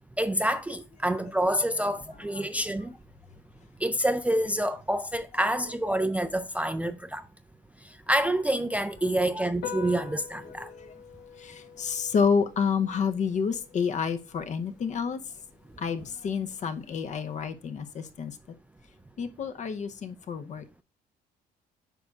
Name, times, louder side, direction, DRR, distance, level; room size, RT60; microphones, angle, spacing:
voice 1, 0.2-2.9 3.8-7.2 8.1-10.7, right 1 dB, 10° right, 0.4 m, -27 dB
Piano, 9.5-17.5, left 8 dB, 75° left, 1.1 m, -46 dB
voice 2, 11.4-15.2 15.8-18.3 19.2-20.8, left 6 dB, 45° left, 0.7 m, -29 dB
9.1 x 5.4 x 2.4 m
cardioid pair, 110°, 17 cm